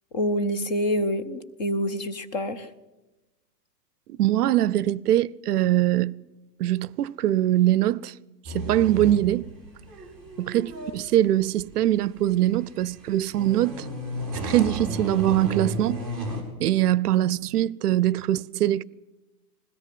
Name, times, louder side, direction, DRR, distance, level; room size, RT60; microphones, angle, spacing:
voice 1, 0.1-2.7, equal, 25° left, 0.7 m, -26 dB
voice 2, 4.1-6.2 6.6-8.1 8.5-9.5 10.4-13.9 14.4-16.0 16.6-18.8, right 13 dB, 65° right, 0.7 m, -22 dB
sound 1, 8.4-16.4, right 1 dB, ahead, 4.9 m, -33 dB
21.0 x 17.0 x 7.7 m
supercardioid pair, 175°, 50 cm